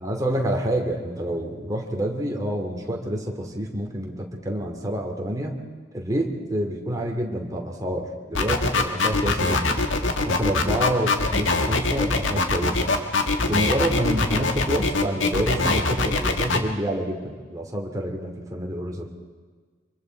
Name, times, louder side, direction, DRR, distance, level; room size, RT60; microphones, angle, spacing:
voice 1, 0.0-5.6 5.9-9.9 10.2-12.9 13.4-19.1, right 1 dB, 20° right, 1 dB, 2.8 m, -27 dB
sound 1, 8.3-16.6, left 3 dB, 80° left, 1.8 m, -22 dB
25.5 x 24.0 x 4.7 m, 1.5 s
head